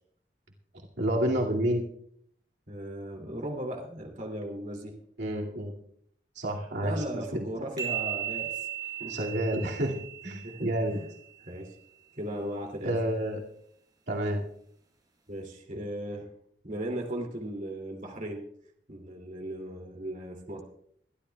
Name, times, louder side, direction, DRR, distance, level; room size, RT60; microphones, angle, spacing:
voice 1, 1.0-1.8 5.2-5.7 6.4-7.4 9.1-10.0 10.2-11.0 12.8-13.4 14.1-14.4, right 1 dB, 80° right, -2 dB, 2.4 m, -29 dB
voice 2, 2.7-4.9 6.8-8.5 8.8-9.2 10.4-11.1 11.4-11.7 12.1-12.9 15.3-16.3 16.6-18.4 18.9-20.6, right 1 dB, 45° right, 2 dB, 2.7 m, -37 dB
sound 1, 7.8-11.3, right 11 dB, 25° right, 4.4 m, -36 dB
24.0 x 12.5 x 2.3 m, 0.66 s
head